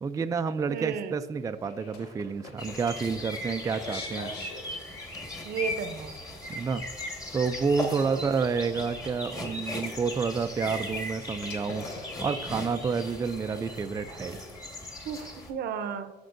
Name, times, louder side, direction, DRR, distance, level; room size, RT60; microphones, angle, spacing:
voice 1, 0.0-4.3 6.5-6.8 7.3-11.9 12.2-14.4, right 5 dB, 20° right, 8 dB, 0.3 m, -29 dB
voice 2, 0.7-1.2 5.4-6.2 7.9-8.3 15.0-16.1, right 7 dB, 70° right, 10 dB, 0.7 m, -34 dB
sound 1, 1.4-14.9, left 3 dB, 90° left, 1.4 m, -48 dB
sound 2, 2.6-15.5, left 1 dB, 20° left, 1.6 m, -38 dB
14.0 x 5.2 x 2.6 m, 1.2 s
cardioid pair, 110°, 17 cm